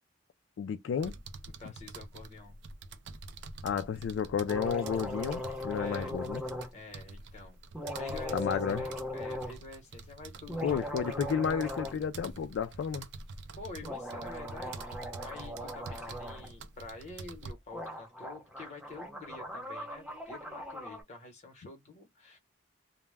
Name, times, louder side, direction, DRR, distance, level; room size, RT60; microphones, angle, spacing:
voice 1, 0.6-1.1 1.6-1.7 3.6-6.4 8.3-8.9 10.6-13.1, left 7 dB, 80° left, 0.3 m, -32 dB
sound 1, 1.0-17.5, right 3 dB, 65° right, 0.4 m, -46 dB
voice 2, 1.6-2.6 5.7-6.1 6.7-7.6 8.0-10.8 11.1-11.4 13.6-14.8 15.1-22.4, left 3 dB, 35° left, 0.9 m, -48 dB
sound 2, 4.5-6.7 7.7-9.6 10.4-12.0 12.3-12.4 13.8-16.5 17.4-17.5 17.7-21.0, left 1 dB, 5° right, 0.8 m, -39 dB
2.1 x 2.1 x 3.2 m
head